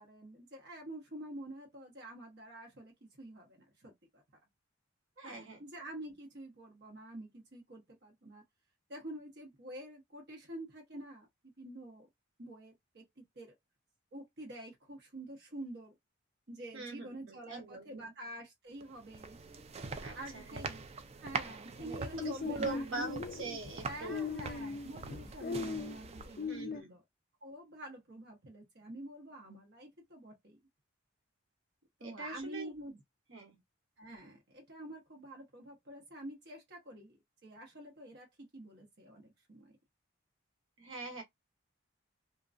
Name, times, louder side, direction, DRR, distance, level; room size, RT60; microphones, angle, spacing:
voice 1, 0.0-4.2 5.2-8.4 8.9-12.1 12.4-13.5 14.1-15.9 16.5-19.4 20.1-20.8 21.2-23.1 23.8-27.0 27.4-30.6 32.0-33.0 34.0-37.2 37.4-39.7, right 1 dB, 55° right, 1.1 m, -48 dB
voice 2, 5.2-5.6 16.7-18.1 20.0-20.7 21.8-24.3 26.4-26.9 32.0-32.7 33.3-33.5 40.8-41.2, right 2 dB, 80° right, 1.2 m, -42 dB
sound 1, 18.8-26.6, right 4 dB, 30° right, 0.3 m, -44 dB
sound 2, 21.8-26.8, left 5 dB, 45° left, 0.4 m, -39 dB
2.8 x 2.5 x 2.5 m
head